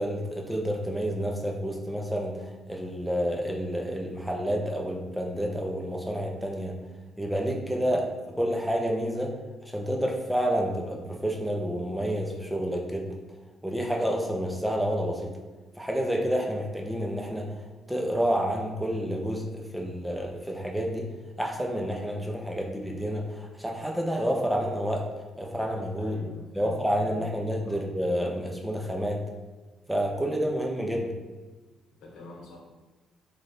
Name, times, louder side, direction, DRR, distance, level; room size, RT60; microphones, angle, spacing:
voice 1, 0.0-6.8 7.2-8.1 8.4-9.3 9.7-13.1 13.6-15.3 15.8-17.6 17.9-21.1 21.4-25.1 25.4-26.2 26.5-29.2 29.9-31.1, equal, 5° right, 1 dB, 0.6 m, -29 dB
voice 2, 26.0-26.7 27.1-27.3 27.6-27.7 32.0-32.6, left 2 dB, 85° left, -2 dB, 0.9 m, -45 dB
3.2 x 2.5 x 4.1 m, 1.3 s
cardioid pair, 90°, 0 cm